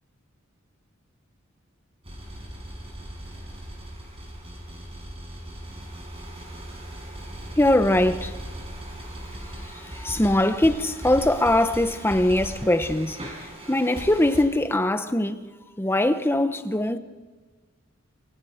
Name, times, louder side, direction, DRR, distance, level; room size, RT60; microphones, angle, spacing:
sound 1, 2.0-14.4, right 1 dB, 30° right, 6.4 m, -38 dB
voice 1, 7.6-8.4 9.6-15.5 15.8-17.0, left 1 dB, 10° left, 1.1 m, -22 dB
28.5 x 23.0 x 5.2 m
head